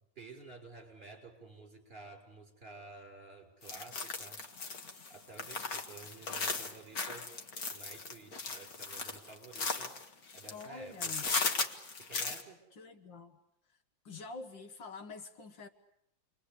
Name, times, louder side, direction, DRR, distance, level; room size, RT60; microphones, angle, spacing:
voice 1, 0.2-4.4 5.1-10.0 10.3-11.4 11.9-12.6, right 3 dB, 25° right, 6.3 m, -52 dB
sound 1, 3.6-10.7 11.0-12.4, left 4 dB, 50° left, 2.2 m, -37 dB
voice 2, 10.5-11.3 12.7-13.4 14.1-15.7, left 4 dB, 70° left, 2.2 m, -46 dB
30.0 x 22.5 x 8.6 m
omnidirectional pair, 2.1 m